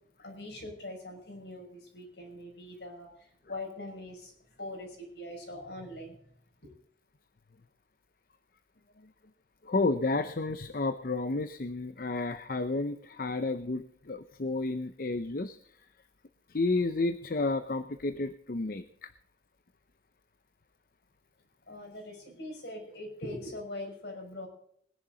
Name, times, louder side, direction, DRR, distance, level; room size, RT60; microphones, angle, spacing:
voice 1, 0.2-3.1 3.5-4.3 4.6-6.2 6.6-6.7 21.7-24.5, left 1 dB, 75° left, 2 dB, 5.8 m, -42 dB
voice 2, 9.6-15.6 16.5-19.1, left 3 dB, 50° left, 11 dB, 0.7 m, -31 dB
20.0 x 11.0 x 3.9 m, 0.65 s
head